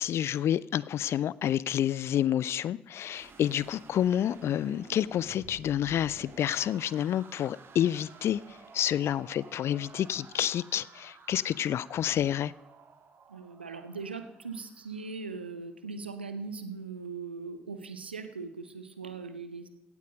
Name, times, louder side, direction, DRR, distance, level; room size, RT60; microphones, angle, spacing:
voice 1, 0.0-12.5, left 10 dB, 50° left, 0.4 m, -29 dB
sound 1, 3.1-15.2, right 5 dB, 45° right, 1.8 m, -53 dB
voice 2, 13.3-19.7, right 4 dB, 85° right, 0.8 m, -40 dB
16.5 x 8.4 x 5.1 m
figure-of-eight pair, 40°, 5 cm